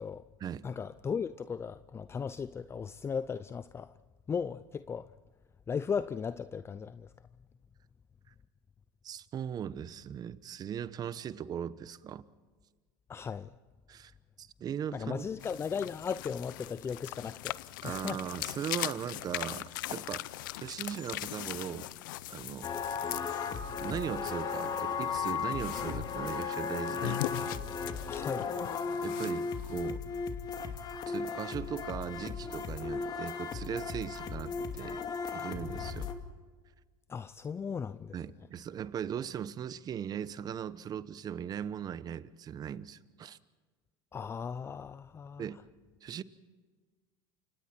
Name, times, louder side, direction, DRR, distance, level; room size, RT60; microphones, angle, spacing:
voice 1, 0.6-3.9 4.3-5.1 5.7-7.1 13.1-13.5 14.9-17.6 17.8-18.2 28.1-28.5 37.1-38.2 44.1-45.5, left 6 dB, 25° left, 0.5 m, -36 dB
voice 2, 9.0-12.2 13.9-14.1 14.4-15.3 17.8-20.3 20.5-21.9 22.3-22.7 23.7-27.2 29.0-30.0 30.6-30.7 31.1-35.0 35.3-36.1 38.1-43.4 45.4-45.6 46.0-46.2, right 9 dB, 40° right, 1.0 m, -39 dB
sound 1, 15.4-29.9, left 17 dB, 85° left, 0.6 m, -41 dB
sound 2, 22.6-36.1, left 5 dB, 40° left, 2.5 m, -36 dB
29.0 x 25.5 x 4.5 m
supercardioid pair, 100°, 11 cm